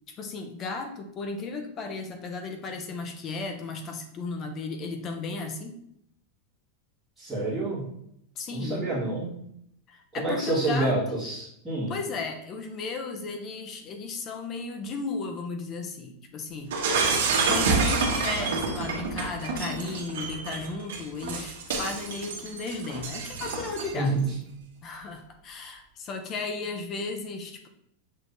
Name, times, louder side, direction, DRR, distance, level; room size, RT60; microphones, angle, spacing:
voice 1, 0.1-5.8 8.4-8.9 9.9-11.2 11.9-16.8 17.5-24.1 24.8-27.7, left 3 dB, 20° left, 5 dB, 0.4 m, -35 dB
voice 2, 7.2-7.8 8.5-9.3 10.1-11.9 23.9-24.2, right 2 dB, 5° right, -14 dB, 1.5 m, -28 dB
Shatter, 16.7-24.1, right 4 dB, 90° right, 1.1 m, -28 dB
6.3 x 3.2 x 2.5 m, 0.73 s
supercardioid pair, 180°, 0 cm